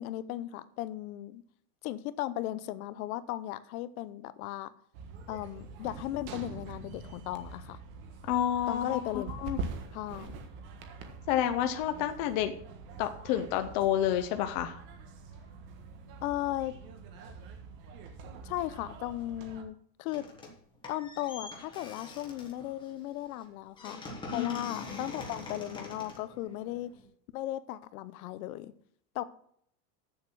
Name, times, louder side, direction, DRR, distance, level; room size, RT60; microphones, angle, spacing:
voice 1, 0.0-1.4 1.8-4.7 5.3-7.8 8.7-9.3 9.9-10.4 16.2-16.7 18.4-20.3 20.9-27.0 27.3-28.7 29.1-29.2, left 14 dB, 60° left, 15 dB, 0.8 m, -36 dB
sound 1, 4.9-19.6, right 4 dB, 55° right, 1.6 m, -45 dB
voice 2, 8.3-9.6 11.3-12.5 13.0-14.8 24.3-24.6, left 11 dB, 30° left, 7 dB, 0.4 m, -29 dB
sound 2, 20.1-20.6 20.8-27.1, left 2 dB, 10° left, 1.2 m, -45 dB
8.3 x 7.3 x 6.1 m, 0.65 s
supercardioid pair, 180°, 49 cm